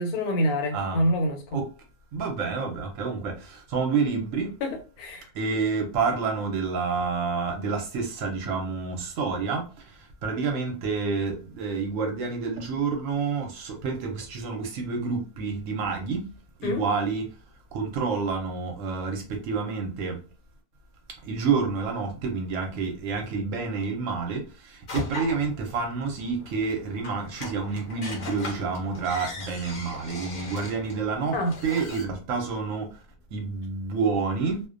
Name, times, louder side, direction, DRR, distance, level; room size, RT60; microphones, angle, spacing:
voice 1, 0.0-1.6 4.6-5.3 16.6-16.8 31.3-31.5, equal, 85° left, 1.1 m, -26 dB
voice 2, 0.7-1.0 1.5-1.7 2.1-4.5 5.3-9.7 10.2-16.2 16.6-17.3 17.7-20.2 21.2-32.9 33.3-34.6, right 5 dB, 70° right, 0.9 m, -28 dB
sound 1, 24.9-32.0, left 3 dB, 60° left, 0.4 m, -39 dB
2.4 x 2.1 x 2.4 m
omnidirectional pair, 1.6 m